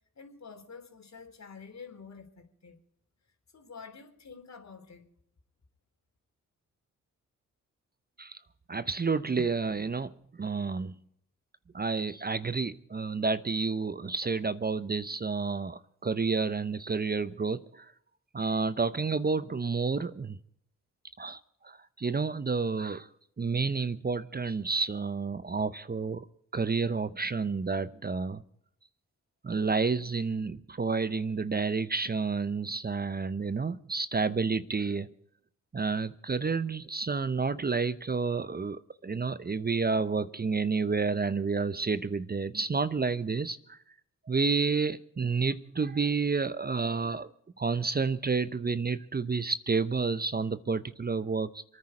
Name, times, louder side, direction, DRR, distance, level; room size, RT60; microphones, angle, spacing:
voice 1, 0.2-2.8 3.5-5.1, left 5 dB, 50° left, 3.5 m, -48 dB
voice 2, 8.7-10.9 11.7-17.9 18.3-20.4 21.2-23.1 23.4-26.3 26.5-28.4 29.4-35.1 35.7-43.8 44.3-47.3 47.6-51.6, right 4 dB, 30° right, 0.8 m, -30 dB
26.5 x 9.8 x 5.0 m
supercardioid pair, 40°, 33 cm